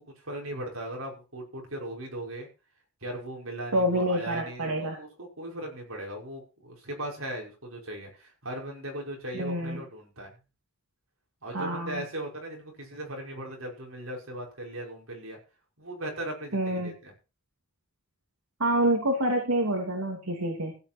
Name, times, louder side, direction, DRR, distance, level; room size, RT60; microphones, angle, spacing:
voice 1, 0.0-2.5 3.0-10.3 11.4-15.4 15.8-17.1, right 1 dB, 65° right, 0 dB, 5.6 m, -38 dB
voice 2, 3.7-5.0 9.3-9.8 11.5-12.0 16.5-16.9 18.6-20.7, right 1 dB, 85° right, 0 dB, 2.9 m, -27 dB
15.5 x 8.8 x 4.5 m, 0.32 s
head